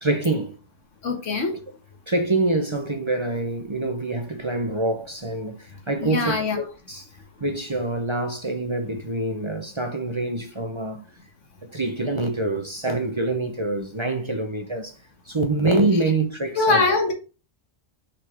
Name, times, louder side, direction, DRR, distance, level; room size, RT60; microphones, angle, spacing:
voice 1, 0.0-0.5 2.1-7.1 7.4-11.0 11.6-14.9 15.3-16.8, right 2 dB, 30° right, 0.8 m, -25 dB
voice 2, 1.0-1.6 6.0-6.6 16.6-17.1, left 3 dB, 85° left, 1.9 m, -22 dB
5.8 x 5.7 x 3.5 m
omnidirectional pair, 1.2 m